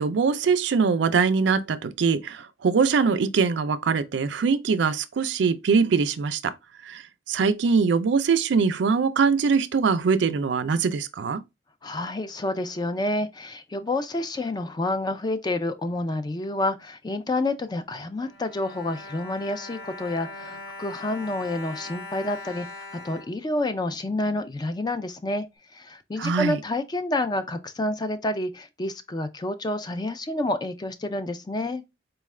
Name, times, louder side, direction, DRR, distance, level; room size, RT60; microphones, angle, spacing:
voice 1, 0.0-6.5 6.9-7.0 7.3-11.4 26.2-26.6, right 5 dB, 80° right, 0.4 m, -22 dB
voice 2, 11.8-22.7 22.9-25.4 25.7-31.8, left 2 dB, 25° left, 0.4 m, -29 dB
Bowed string instrument, 18.0-24.2 24.9-25.0 25.3-25.4, left 2 dB, 75° left, 1.4 m, -41 dB
4.2 x 2.3 x 3.1 m
head